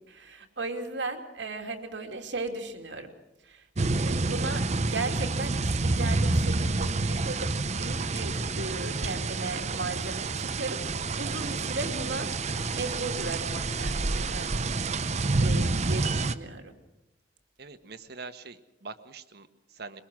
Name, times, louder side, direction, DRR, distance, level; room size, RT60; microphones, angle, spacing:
voice 1, 0.1-3.1 3.4-3.7 4.0-10.8 11.1-12.3 12.7-14.7 15.4-16.7, right 3 dB, 90° right, 5 dB, 2.8 m, -36 dB
sound 1, 3.8-16.3, right 3 dB, 40° right, 0.8 m, -28 dB
voice 2, 17.6-20.0, right 4 dB, 65° right, 10 dB, 1.4 m, -44 dB
22.5 x 22.5 x 6.2 m, 0.98 s
head